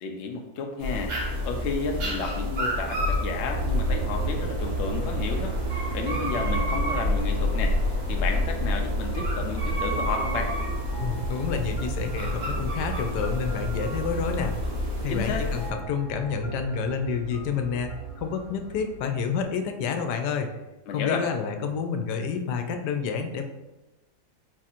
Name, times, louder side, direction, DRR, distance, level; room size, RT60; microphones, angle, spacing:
voice 1, 0.0-1.1 1.4-7.7 8.1-10.5 15.1-15.4 20.9-21.2, left 4 dB, 70° left, 3 dB, 0.6 m, -32 dB
sound 1, 0.8-15.7, left 1 dB, 85° right, 1.7 m, -29 dB
Aircraft, 3.3-19.5, right 7 dB, 60° right, 0.9 m, -37 dB
sound 2, 9.7-19.5, left 1 dB, 30° left, 0.5 m, -46 dB
voice 2, 11.0-14.5 15.0-17.9 18.2-20.5 20.9-23.4, left 6 dB, 90° left, 5 dB, 1.2 m, -29 dB
4.5 x 2.4 x 4.2 m, 1.1 s
omnidirectional pair, 1.7 m